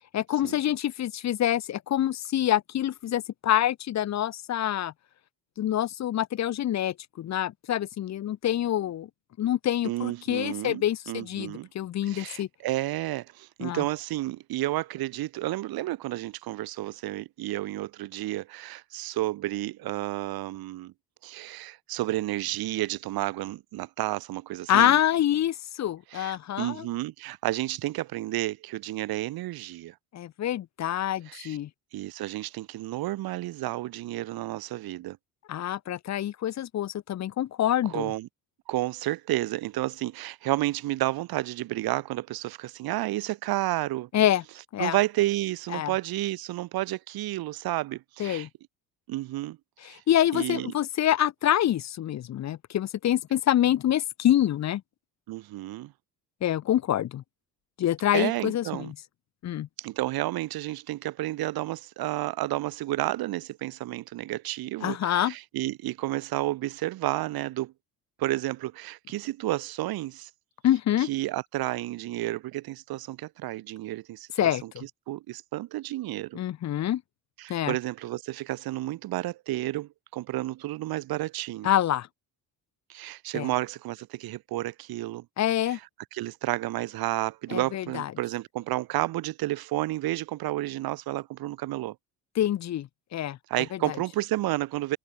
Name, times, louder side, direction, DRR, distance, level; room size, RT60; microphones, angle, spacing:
voice 1, 0.1-4.9 5.6-9.1 9.4-12.5 13.6-13.8 24.7-26.9 30.1-31.7 35.5-38.1 44.1-44.4 44.7-45.0 45.7-45.9 48.2-48.5 49.8-54.8 56.4-57.2 57.8-59.0 59.4-59.7 64.8-65.3 70.6-71.1 74.4-74.8 76.3-77.0 77.5-77.8 81.6-82.1 83.3-83.5 85.4-85.8 87.5-88.1 92.4-93.4 93.7-93.9, left 11 dB, 45° left, 0.8 m, -26 dB
voice 2, 9.8-11.7 12.1-20.9 21.2-25.0 26.1-29.9 31.3-31.6 31.9-35.2 37.9-38.3 38.7-44.1 44.8-48.5 49.1-49.6 49.8-50.0 50.3-50.7 55.3-55.9 58.1-58.9 59.8-67.7 68.2-70.3 71.1-74.7 75.1-76.4 77.4-81.7 82.9-85.2 86.1-91.9 93.5-95.0, right 16 dB, 70° right, 1.2 m, -31 dB
cardioid pair, 115°, 38 cm